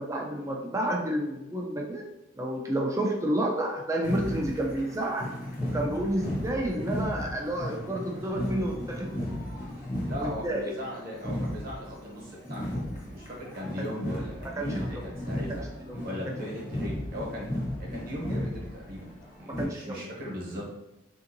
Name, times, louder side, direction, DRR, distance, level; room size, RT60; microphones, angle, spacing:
voice 1, 0.0-2.1 2.3-5.3 5.6-9.4 10.1-10.7 13.8-13.9 14.6-15.0 15.5-15.6 15.9-16.0 19.5-20.0, right 1 dB, 15° right, 0 dB, 0.4 m, -30 dB
sound 1, 4.0-19.6, left 1 dB, 30° left, 0.8 m, -35 dB
voice 2, 10.1-15.6 16.0-17.4 17.8-19.1 19.4-20.6, equal, 45° right, -3 dB, 1.0 m, -38 dB
3.6 x 2.7 x 2.6 m, 0.98 s
head